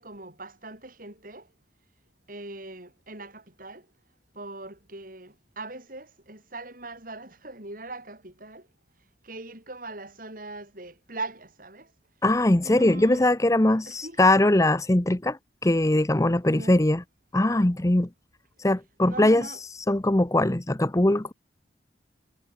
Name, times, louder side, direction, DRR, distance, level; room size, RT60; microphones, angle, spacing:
voice 1, 0.0-1.5 2.3-3.9 4.3-8.7 9.2-11.9 12.6-13.3 13.8-14.2 16.5-16.8 19.1-19.6, right 2 dB, 50° right, 7.8 m, -40 dB
voice 2, 12.2-17.0 17.3-18.1 18.6-19.5 19.9-21.3, left 1 dB, 15° left, 0.8 m, -21 dB
head